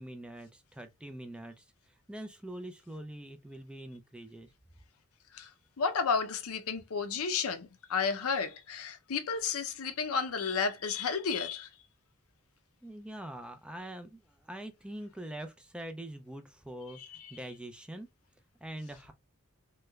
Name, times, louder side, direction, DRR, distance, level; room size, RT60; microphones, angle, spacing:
voice 1, 0.0-4.5 12.8-18.1 18.6-19.1, right 1 dB, 5° right, 0.3 m, -44 dB
voice 2, 5.3-11.7 17.0-17.3, left 5 dB, 70° left, 0.6 m, -32 dB
3.2 x 3.1 x 2.3 m
head